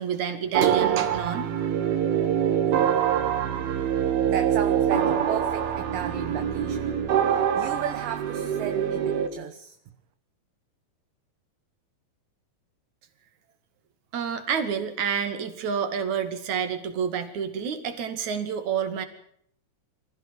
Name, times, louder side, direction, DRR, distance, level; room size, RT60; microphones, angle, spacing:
voice 1, 0.0-1.5 14.1-19.1, right 7 dB, 55° right, 9 dB, 3.4 m, -28 dB
sound 1, 0.5-9.3, right 9 dB, 90° right, 3.8 m, -25 dB
voice 2, 4.3-6.9 7.3-9.8, right 10 dB, 70° right, 8 dB, 2.7 m, -34 dB
26.0 x 16.0 x 7.5 m, 0.69 s
omnidirectional pair, 4.2 m